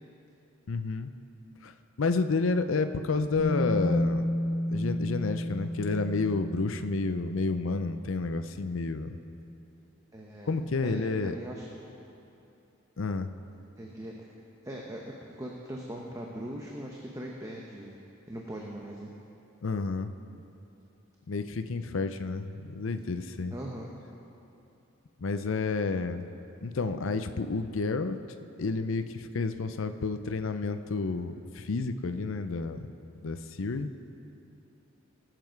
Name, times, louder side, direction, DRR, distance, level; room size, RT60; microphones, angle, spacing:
voice 1, 0.7-1.1 1.6-4.3 4.7-9.1 10.5-11.4 13.0-13.3 19.6-20.1 21.3-23.5 25.2-26.2 26.6-28.2 28.6-32.8 33.2-33.9, left 3 dB, 70° left, 9 dB, 0.6 m, -30 dB
Bass guitar, 3.4-7.3 8.4-8.5, left 1 dB, 90° right, 2.2 m, -31 dB
voice 2, 10.1-10.6 10.8-11.7 13.8-14.3 14.6-18.0 18.3-19.1 23.5-23.9, right 1 dB, 15° right, -2 dB, 0.9 m, -40 dB
19.5 x 7.7 x 4.6 m, 2.8 s
head